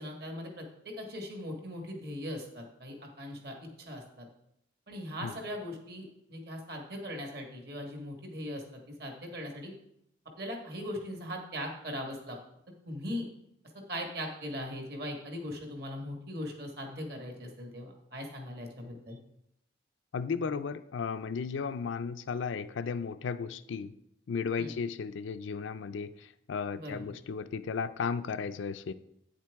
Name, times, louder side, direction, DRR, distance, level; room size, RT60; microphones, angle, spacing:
voice 1, 0.0-4.3 4.9-9.7 10.4-12.4 12.8-13.3 13.9-19.2 24.6-24.7 26.8-27.1, equal, 50° right, 2 dB, 1.6 m, -40 dB
voice 2, 20.1-23.9 24.3-28.9, left 5 dB, 70° left, 14 dB, 0.4 m, -35 dB
8.8 x 7.5 x 3.5 m, 0.79 s
head